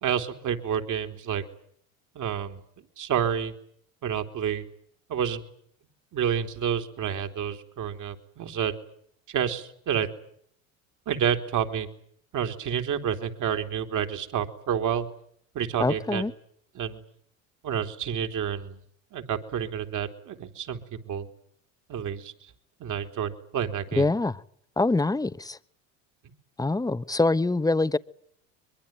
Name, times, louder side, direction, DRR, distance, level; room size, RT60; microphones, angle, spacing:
voice 1, 0.0-1.4 2.2-2.6 3.0-3.5 4.0-4.7 5.1-5.4 6.1-8.7 9.3-10.1 11.1-11.9 12.3-15.1 15.5-16.3 16.7-17.0 17.6-18.8 19.1-21.3 21.9-22.5 22.8-24.1, right 8 dB, 50° right, 7 dB, 3.8 m, -29 dB
voice 2, 15.8-16.3 24.0-24.4 24.8-25.6 26.6-28.0, left 2 dB, 10° left, 15 dB, 1.2 m, -24 dB
23.0 x 23.0 x 9.2 m, 0.66 s
hypercardioid pair, 80°, 39 cm